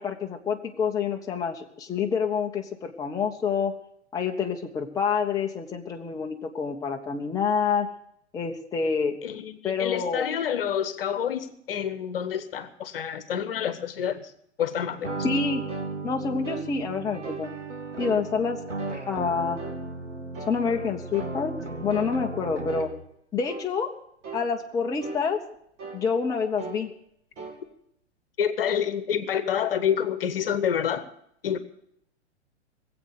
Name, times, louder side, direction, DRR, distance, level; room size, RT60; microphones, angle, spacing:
voice 1, 0.0-3.7 4.1-7.9 8.3-9.2 9.6-10.3 15.2-15.6 16.0-17.5 18.0-18.6 19.1-19.6 20.5-22.9 23.3-23.9 24.3-25.4 25.9-26.9, left 5 dB, 10° left, 1 dB, 1.0 m, -27 dB
voice 2, 9.2-14.3 14.6-15.1 28.4-31.1 31.4-31.6, left 8 dB, 55° left, 13 dB, 1.2 m, -28 dB
sound 1, 15.0-23.1, right 3 dB, 90° right, 1.5 m, -35 dB
sound 2, 15.7-15.9 16.4-16.7 17.2-17.5 18.0-18.2 18.8-19.0 19.6-19.8 20.3-20.6 21.1-21.4 21.9-22.1 22.7-22.9 23.4-23.7 24.2-24.5 25.0-25.2 25.8-26.0 26.6-26.8 27.4-27.6, right 4 dB, 30° right, 2.5 m, -38 dB
20.0 x 8.0 x 6.7 m, 0.70 s
figure-of-eight pair, 105°, 35 cm